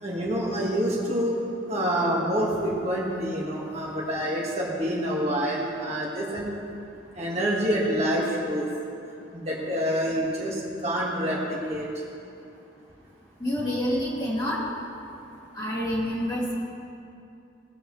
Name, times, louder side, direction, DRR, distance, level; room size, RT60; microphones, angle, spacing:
voice 1, 0.0-1.4 1.7-6.5 7.1-8.7 9.3-11.9, equal, 35° right, -5 dB, 1.7 m, -27 dB
voice 2, 13.4-14.6 15.5-16.5, equal, 20° left, -7 dB, 2.7 m, -27 dB
19.5 x 7.8 x 3.2 m, 2.6 s
head